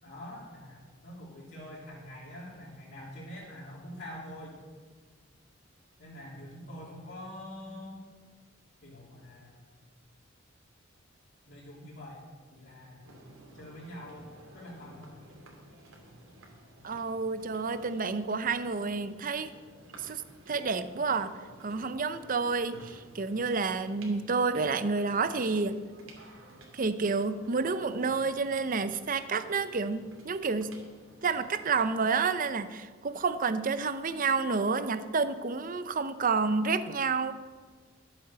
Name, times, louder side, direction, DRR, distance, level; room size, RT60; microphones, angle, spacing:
voice 1, 0.0-4.6 6.0-8.0 8.8-9.6 11.5-12.2 12.5-13.1 13.5-15.2, left 1 dB, 55° left, -8 dB, 3.2 m, -45 dB
sound 1, 13.0-31.9, right 1 dB, 85° right, 2.6 m, -53 dB
voice 2, 16.8-19.5 20.0-25.8 26.7-30.8 31.2-37.3, right 4 dB, 40° right, 12 dB, 0.6 m, -29 dB
12.5 x 7.7 x 6.9 m, 1.5 s
head